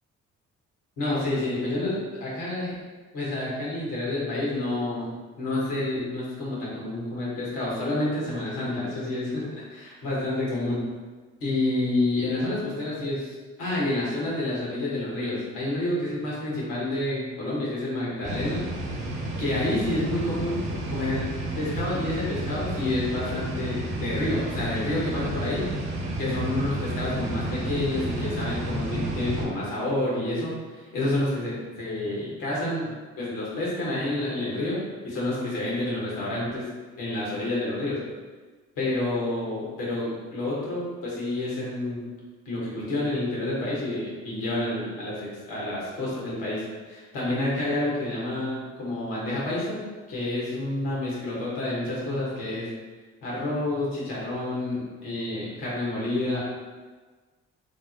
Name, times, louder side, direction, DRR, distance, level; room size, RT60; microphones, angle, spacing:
voice 1, 1.0-2.8 3.1-10.8 11.4-18.6 19.4-21.3 21.6-25.7 26.2-36.7 37.0-38.0 38.8-42.1 42.4-52.7 53.2-56.4, left 2 dB, 80° left, -6 dB, 1.4 m, -29 dB
sound 1, 18.2-29.4, right 1 dB, 35° right, 1.0 m, -31 dB
3.4 x 2.0 x 4.1 m, 1.4 s
hypercardioid pair, 55°, 33 cm